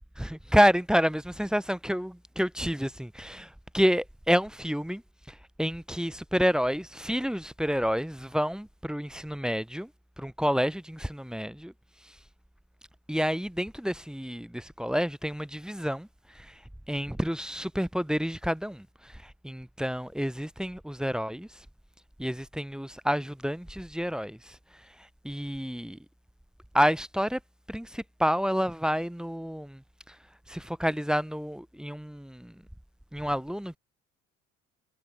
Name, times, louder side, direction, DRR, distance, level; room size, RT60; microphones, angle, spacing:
voice 1, 0.2-3.5 3.7-5.0 5.6-9.9 10.2-11.7 13.1-16.1 16.9-18.9 19.4-21.5 22.2-24.5 25.2-26.0 26.7-27.4 27.7-29.8 30.5-32.5 33.1-33.8, equal, ahead, 0.9 m, -29 dB
figure-of-eight pair, 50°, 41 cm